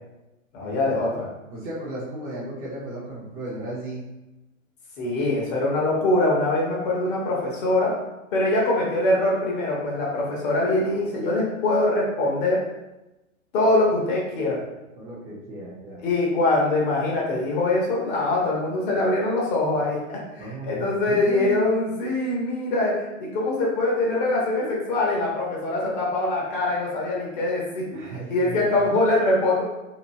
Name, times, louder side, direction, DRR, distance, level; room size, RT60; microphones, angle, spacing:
voice 1, 0.5-1.3 5.0-7.9 8.3-12.6 13.5-14.6 16.0-27.8 28.3-29.6, left 2 dB, 40° left, -3 dB, 1.0 m, -23 dB
voice 2, 1.5-4.0 15.0-16.0 20.4-21.6 27.9-28.9, right 1 dB, 20° right, -7 dB, 0.6 m, -35 dB
2.9 x 2.2 x 2.7 m, 0.97 s
hypercardioid pair, 130°, 41 cm